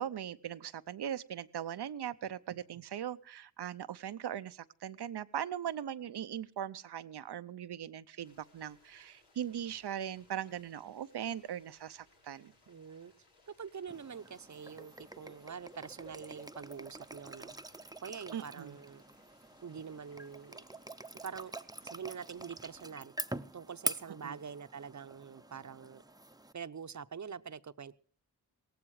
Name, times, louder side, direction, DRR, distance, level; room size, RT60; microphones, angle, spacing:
voice 1, 0.0-12.5 18.3-18.8 24.2-24.4, right 9 dB, 90° right, 13 dB, 0.7 m, -40 dB
sound 1, 8.2-22.8, left 2 dB, 85° left, 4.0 m, -67 dB
voice 2, 12.7-13.1 13.5-19.0 19.6-20.6 21.2-21.5 21.8-23.1 23.5-26.0 26.5-28.0, right 6 dB, 50° right, 13 dB, 0.8 m, -45 dB
sound 2, 13.9-26.5, right 2 dB, 10° right, 0.8 m, -45 dB
17.5 x 15.0 x 4.8 m, 0.43 s
cardioid pair, 60°, 38 cm